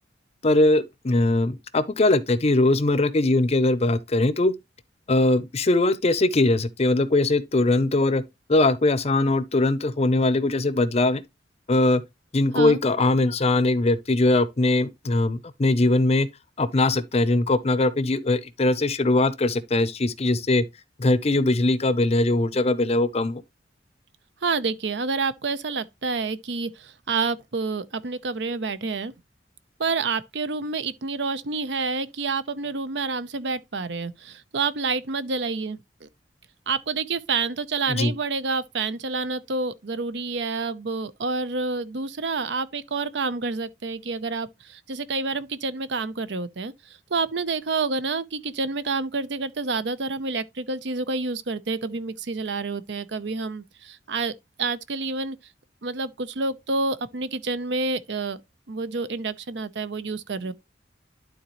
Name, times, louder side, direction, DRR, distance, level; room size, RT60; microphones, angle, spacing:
voice 1, 0.4-4.5 5.1-8.2 8.5-11.2 11.7-12.0 12.3-16.3 16.6-20.6 21.0-23.4 37.9-38.1, left 2 dB, 35° left, 0.6 m, -21 dB
voice 2, 24.4-29.1 29.8-36.1 36.7-54.3 54.6-55.4 55.8-58.4 58.7-60.5, right 4 dB, 70° right, 0.7 m, -28 dB
11.5 x 4.0 x 3.0 m
head